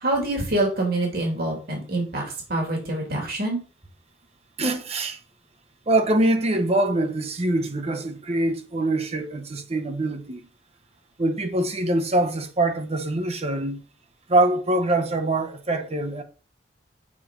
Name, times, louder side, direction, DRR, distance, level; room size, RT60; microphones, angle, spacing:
voice 1, 0.0-2.2 2.5-3.6, right 1 dB, 60° right, 2.2 m, -25 dB
voice 2, 4.6-5.2 5.9-10.4 11.2-13.8 14.3-16.2, right 2 dB, 35° right, 0.8 m, -24 dB
7.3 x 4.4 x 3.6 m
head